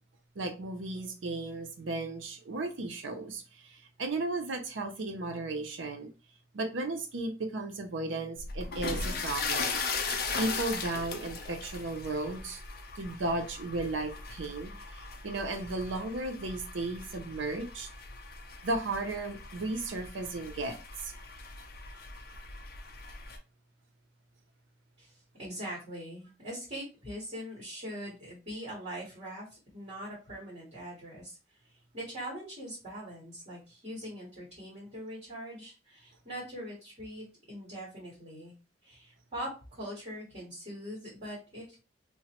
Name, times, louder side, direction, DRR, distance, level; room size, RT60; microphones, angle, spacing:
voice 1, 0.4-6.1 6.5-9.8 10.4-12.6 13.0-17.9 18.6-21.1, right 2 dB, 90° right, 0.6 m, -35 dB
sound 1, 8.4-23.4, left 4 dB, 55° left, 0.5 m, -38 dB
voice 2, 25.0-31.4 31.9-38.5 38.8-41.8, equal, 35° right, 1.6 m, -42 dB
2.9 x 2.1 x 2.9 m
head